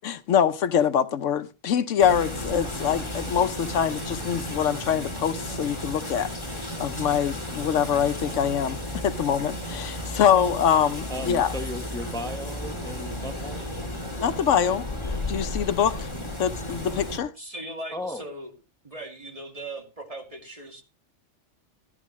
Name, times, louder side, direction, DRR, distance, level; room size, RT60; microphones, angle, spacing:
voice 1, 0.0-6.3 6.8-8.8 9.0-11.5 14.2-16.1 16.4-17.3, left 8 dB, 85° left, 1.1 m, -24 dB
sound 1, 2.0-17.2, left 1 dB, 25° left, 2.8 m, -33 dB
voice 2, 11.1-13.8 17.9-18.2, left 1 dB, 5° left, 1.1 m, -36 dB
voice 3, 17.4-18.5 18.8-20.8, right 1 dB, 30° right, 2.5 m, -39 dB
15.0 x 12.0 x 3.1 m
omnidirectional pair, 1.2 m